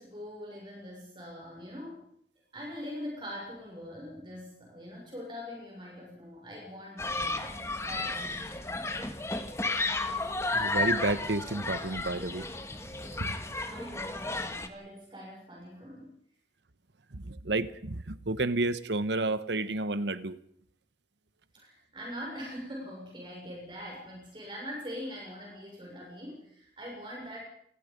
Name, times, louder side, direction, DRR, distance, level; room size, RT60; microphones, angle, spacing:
voice 1, 0.0-2.1 2.5-7.4 7.8-8.8 13.1-16.1 21.5-27.4, equal, 25° right, 6.3 m, -43 dB
Human group actions, 7.0-14.7, left 2 dB, 15° left, 1.5 m, -33 dB
voice 2, 10.5-12.4 13.2-13.3 17.1-20.4, right 2 dB, 85° right, 1.2 m, -31 dB
27.5 x 20.0 x 5.4 m
head